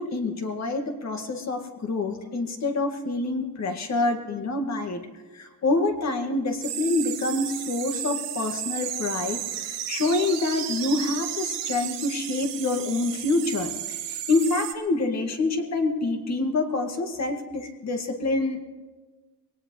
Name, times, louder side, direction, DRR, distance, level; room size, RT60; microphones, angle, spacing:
voice 1, 0.0-5.0 5.3-18.6, left 2 dB, 40° left, 4 dB, 2.0 m, -27 dB
sound 1, 6.6-14.7, right 10 dB, 80° right, 1.8 m, -33 dB
22.5 x 18.5 x 3.2 m, 1.3 s
cardioid pair, 130°, 41 cm